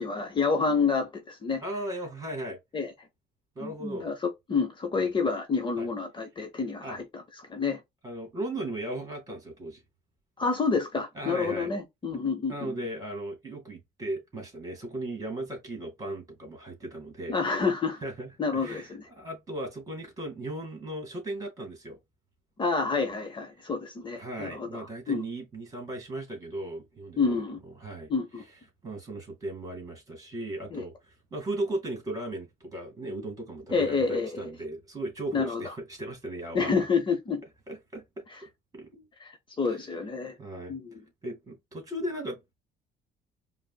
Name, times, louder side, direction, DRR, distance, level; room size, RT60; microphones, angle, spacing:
voice 1, 0.0-1.6 2.7-2.9 3.6-7.2 7.5-7.8 10.4-12.7 17.3-18.0 18.4-19.0 22.6-25.2 27.2-27.6 28.1-28.4 30.7-30.8 33.7-34.5 35.3-35.7 36.5-37.4 38.3-38.4 39.2-40.3 40.7-41.0, left 4 dB, 30° left, 0.7 m, -29 dB
voice 2, 1.6-2.6 3.6-4.1 5.0-5.1 5.8-5.9 6.8-7.0 8.0-9.8 11.1-11.7 12.5-17.4 18.0-22.0 23.6-23.7 24.2-28.5 28.8-36.9 37.7-39.1 39.7-39.8 40.4-40.7 41.2-42.4, right 1 dB, 20° right, 2.2 m, -37 dB
4.9 x 2.0 x 2.2 m
cardioid pair, 110°, 17 cm